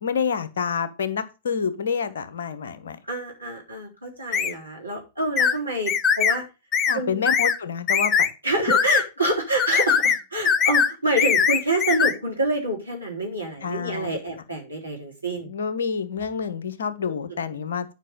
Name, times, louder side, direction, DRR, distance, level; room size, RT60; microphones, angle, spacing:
voice 1, 0.0-3.0 6.9-8.3 13.6-14.1 15.4-17.9, left 6 dB, 65° left, 11 dB, 1.2 m, -28 dB
voice 2, 3.1-6.4 6.9-7.2 8.4-15.5 17.1-17.4, right 1 dB, 90° right, -1 dB, 3.7 m, -27 dB
sound 1, 4.3-4.5 5.4-5.6 5.9-6.4 6.7-7.0 7.3-7.6 7.9-8.3 8.7-9.0 9.6-10.2 10.5-10.9 11.2-12.1, left 7 dB, 25° left, 0.7 m, -20 dB
9.9 x 5.4 x 5.2 m, 0.29 s
figure-of-eight pair, 100°, 0 cm